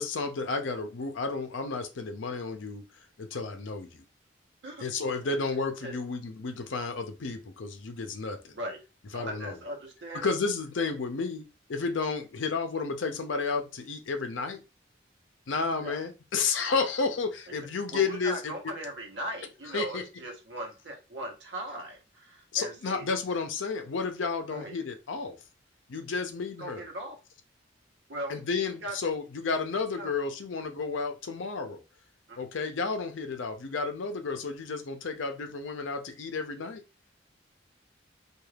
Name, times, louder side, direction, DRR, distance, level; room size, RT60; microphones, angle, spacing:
voice 1, 0.0-2.9 3.2-4.0 4.8-8.6 9.1-9.5 10.2-11.4 11.7-14.6 15.5-18.5 19.7-20.0 22.5-25.4 25.9-26.8 28.3-31.8 32.4-36.8, left 4 dB, 90° left, 0.6 m, -32 dB
voice 2, 4.6-5.4 5.8-6.0 8.5-8.8 9.1-10.3 15.8-16.0 17.9-23.1 24.5-24.8 26.6-27.2 28.1-28.4 28.8-29.0 29.9-30.1 32.3-32.4, right 1 dB, 70° right, 0.9 m, -39 dB
2.4 x 2.3 x 3.2 m
head